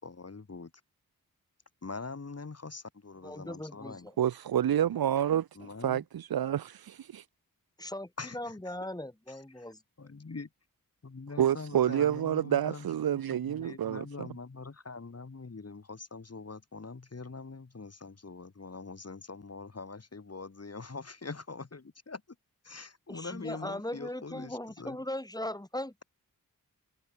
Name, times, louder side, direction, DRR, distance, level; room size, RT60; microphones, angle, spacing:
voice 1, 0.0-0.7 1.8-4.1 5.5-6.0 8.2-8.9 9.3-10.5 11.0-12.9 13.1-21.8 22.1-22.2 22.6-25.0, left 4 dB, 45° left, 4.8 m, -43 dB
voice 2, 3.2-4.1 7.8-9.8 23.1-25.9, left 1 dB, 10° left, 6.3 m, -39 dB
voice 3, 4.2-5.5 5.8-7.2 11.4-14.3, right 10 dB, 85° right, 0.8 m, -28 dB
wide cardioid pair, 75°, 35 cm